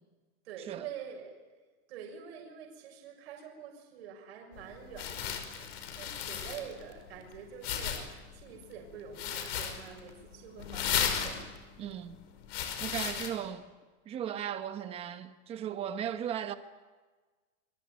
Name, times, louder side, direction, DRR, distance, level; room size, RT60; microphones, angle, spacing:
voice 1, 0.4-1.4 1.9-8.1 8.3-11.4, right 8 dB, 60° right, 6.4 m, -46 dB
sound 1, 4.5-13.3, left 8 dB, 60° left, 5.2 m, -36 dB
voice 2, 11.8-12.2 12.8-13.7 14.0-16.5, right 9 dB, 15° right, 1.1 m, -36 dB
27.0 x 23.0 x 9.5 m
supercardioid pair, 180°, 35 cm